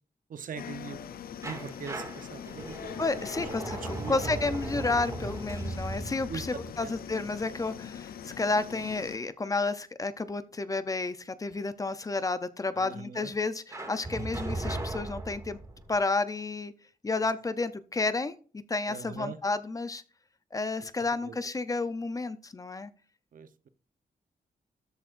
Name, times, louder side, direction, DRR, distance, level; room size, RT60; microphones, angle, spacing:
voice 1, 0.3-2.9 3.4-3.5 4.0-4.3 6.3-6.4 6.8-6.9 12.8-13.3 18.9-19.4 21.2-21.3 23.3-23.7, right 6 dB, 65° right, 0.9 m, -42 dB
sound 1, 0.6-9.2, left 9 dB, 90° left, 0.5 m, -42 dB
sound 2, 1.4-8.2 13.7-15.9, right 2 dB, 20° right, 2.2 m, -38 dB
voice 2, 3.0-15.6 15.9-16.7 17.0-20.0 20.5-22.9, left 3 dB, 25° left, 0.6 m, -31 dB
13.0 x 8.2 x 2.6 m
wide cardioid pair, 165°, 15 cm